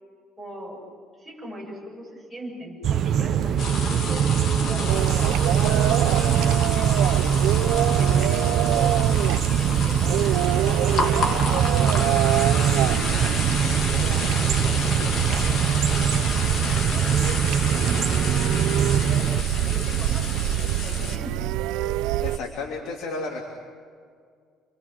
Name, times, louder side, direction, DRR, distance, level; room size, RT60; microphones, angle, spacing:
voice 1, 0.4-0.8 1.2-5.1 5.5-9.2 9.5-15.8 16.6-19.3 19.6-21.4, equal, 5° left, -2 dB, 7.9 m, -40 dB
sound 1, 2.8-19.4, right 8 dB, 45° right, 1.0 m, -23 dB
sound 2, 3.6-21.2, left 3 dB, 40° left, 2.8 m, -31 dB
sound 3, 4.9-22.4, right 15 dB, 85° right, 0.6 m, -27 dB
voice 2, 22.2-23.5, left 3 dB, 70° left, 0 dB, 3.3 m, -32 dB
29.5 x 23.0 x 7.7 m, 2.1 s
cardioid pair, 165°, 0 cm